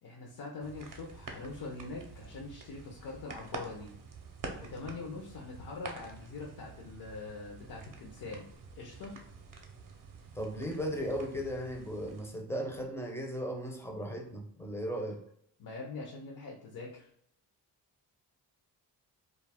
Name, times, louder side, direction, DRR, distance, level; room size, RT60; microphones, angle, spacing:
voice 1, 0.0-3.9 4.6-9.2 15.6-17.1, left 3 dB, 55° left, 0 dB, 0.6 m, -43 dB
sound 1, 0.6-12.3, right 4 dB, 45° right, 0.6 m, -48 dB
voice 2, 10.4-15.2, equal, 5° left, 2 dB, 0.5 m, -36 dB
2.3 x 2.0 x 3.4 m, 0.69 s
cardioid pair, 65°, 46 cm